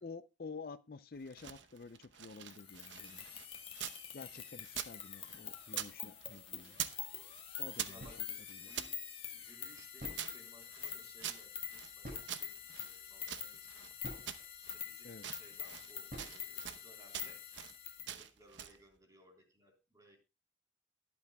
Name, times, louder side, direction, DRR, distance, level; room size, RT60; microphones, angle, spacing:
voice 1, 0.0-3.4 4.1-6.8 7.6-8.0 8.5-8.7 15.0-15.3, left 4 dB, 50° left, 0.5 m, -50 dB
sound 1, 1.2-4.0 4.3-5.9 6.2-7.0 7.3-8.9 9.5-11.9 12.3-13.9 14.3-14.8 15.1-15.9 16.2-16.8 17.1-17.7 18.1-18.8, right 10 dB, 90° right, 0.9 m, -45 dB
sound 2, 2.5-18.1, left 8 dB, 30° left, 1.5 m, -46 dB
voice 2, 7.9-9.0 9.3-13.9 14.7-17.4 17.9-20.2, equal, 20° right, 3.6 m, -62 dB
sound 3, 8.0-8.3 9.6-9.7 9.9-10.7 12.0-12.8 13.5-14.5 16.1-16.7, equal, 45° right, 5.4 m, -49 dB
22.5 x 8.5 x 2.3 m
head